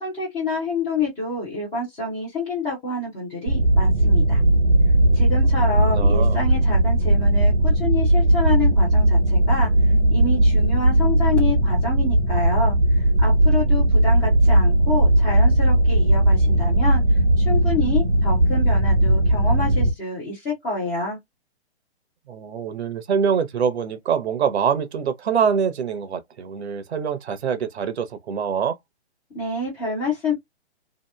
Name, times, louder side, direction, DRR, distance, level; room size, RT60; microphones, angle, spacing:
voice 1, 0.0-4.4 5.1-9.7 10.1-21.2 29.3-30.3, left 3 dB, 10° left, 0.4 m, -28 dB
sound 1, 3.5-19.9, right 1 dB, 90° right, 1.2 m, -18 dB
voice 2, 5.9-6.4 22.3-28.8, right 7 dB, 70° right, 0.8 m, -24 dB
2.8 x 2.5 x 2.2 m
hypercardioid pair, 140°, 33 cm